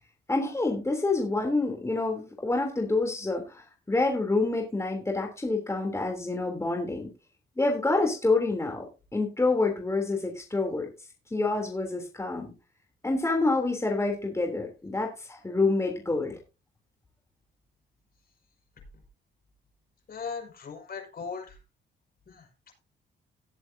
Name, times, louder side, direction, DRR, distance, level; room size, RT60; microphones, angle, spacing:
voice 1, 0.3-7.1 7.6-8.8 9.1-10.9 11.3-12.5 13.0-16.3, left 3 dB, 15° left, 2 dB, 3.3 m, -27 dB
voice 2, 20.1-21.6 22.3-22.5, left 5 dB, 50° left, 3 dB, 5.9 m, -38 dB
18.5 x 7.8 x 2.8 m, 0.30 s
cardioid pair, 90°, 20 cm